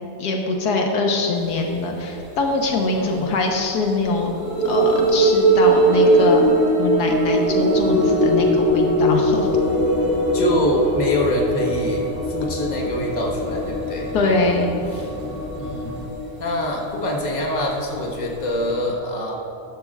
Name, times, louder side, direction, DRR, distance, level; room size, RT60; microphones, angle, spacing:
voice 1, 0.2-4.3 4.6-6.5 6.8-9.5 14.1-14.7, left 3 dB, 85° left, 1 dB, 1.6 m, -23 dB
sound 1, 2.2-2.3 4.2-18.7, right 1 dB, 65° right, 1.8 m, -21 dB
voice 2, 2.9-3.3 10.3-14.1 15.6-16.0 16.4-19.3, left 1 dB, 30° left, -2 dB, 1.4 m, -25 dB
sound 2, 7.7-16.1, left 1 dB, 10° left, 0.7 m, -35 dB
12.5 x 11.5 x 2.4 m, 2.9 s
omnidirectional pair, 1.7 m